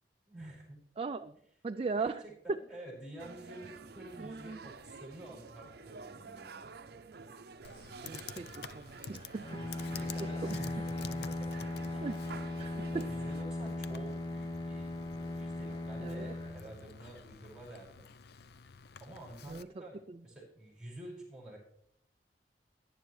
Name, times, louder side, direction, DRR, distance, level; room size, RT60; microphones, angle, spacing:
voice 1, 0.3-0.8 2.0-6.6 9.5-11.7 11.9-12.1 12.9-14.9 15.3-18.1 19.0-21.6, right 1 dB, 5° right, -3 dB, 5.9 m, -49 dB
voice 2, 1.0-1.4 1.6-2.2 2.5-2.6 4.2-4.6 8.0-8.5 8.7-9.4 9.8-9.9 10.2-10.6 12.0-12.1 12.6-13.0 16.0-16.3 19.5-19.7 20.1-20.2, right 4 dB, 35° right, 7 dB, 0.4 m, -38 dB
sound 1, 3.2-13.4, right 4 dB, 60° right, 0.7 m, -50 dB
Computer keyboard, 7.6-19.6, left 6 dB, 60° left, 0.5 m, -50 dB
Bowed string instrument, 9.4-17.4, left 2 dB, 25° left, 0.8 m, -38 dB
17.5 x 10.5 x 3.2 m, 0.68 s
head